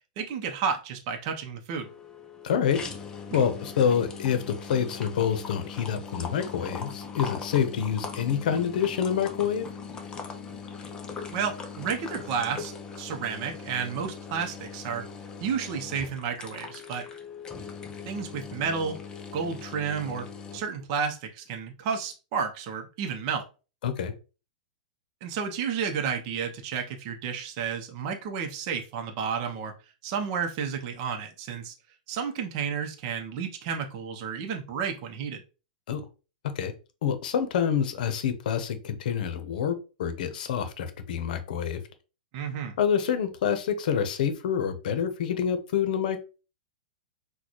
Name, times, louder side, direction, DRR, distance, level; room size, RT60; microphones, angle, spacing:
voice 1, 0.2-1.9 3.3-3.4 11.3-12.7 13.0-15.0 15.4-17.0 18.1-19.0 19.3-20.3 20.5-23.5 25.2-29.7 30.0-31.7 32.1-35.4 42.3-42.8, right 6 dB, 40° right, 4 dB, 0.7 m, -31 dB
sound 1, 1.8-20.6, left 5 dB, 15° left, 0.6 m, -40 dB
voice 2, 2.4-2.8 3.3-9.7 23.8-24.1 35.9-36.0 36.6-36.7 37.0-41.8 42.8-46.2, left 8 dB, 65° left, 10 dB, 0.7 m, -27 dB
3.9 x 2.2 x 3.0 m, 0.33 s
hypercardioid pair, 150°, 5 cm